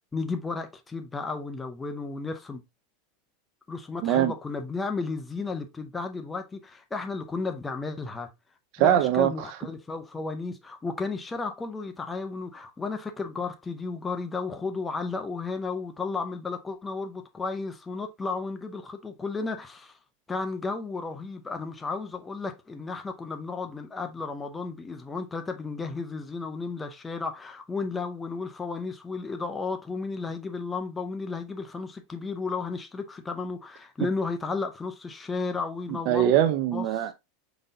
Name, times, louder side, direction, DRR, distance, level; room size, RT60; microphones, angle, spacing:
voice 1, 0.1-2.6 3.7-8.3 8.8-20.0 20.3-36.3 36.7-37.1, left 4 dB, 10° left, 0.6 m, -33 dB
voice 2, 8.7-9.3 36.1-37.1, right 12 dB, 50° right, 0.5 m, -22 dB
5.1 x 3.9 x 2.6 m
supercardioid pair, 150°, 0 cm